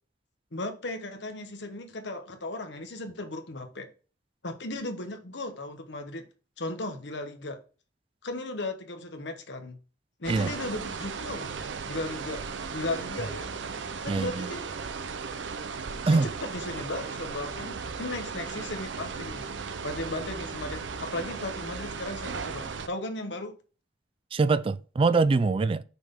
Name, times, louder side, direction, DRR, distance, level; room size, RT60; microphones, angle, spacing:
voice 1, 0.5-3.9 4.4-6.2 6.6-7.6 8.2-9.8 10.2-11.5 11.9-12.4 12.7-13.5 14.0-14.7 16.1-19.5 19.8-23.5, left 2 dB, 70° left, 1.1 m, -36 dB
sound 1, 10.2-22.9, right 5 dB, 90° right, 0.6 m, -36 dB
voice 2, 14.1-14.5 16.1-16.3 24.3-25.8, right 3 dB, 30° right, 0.3 m, -24 dB
6.0 x 3.7 x 5.8 m
head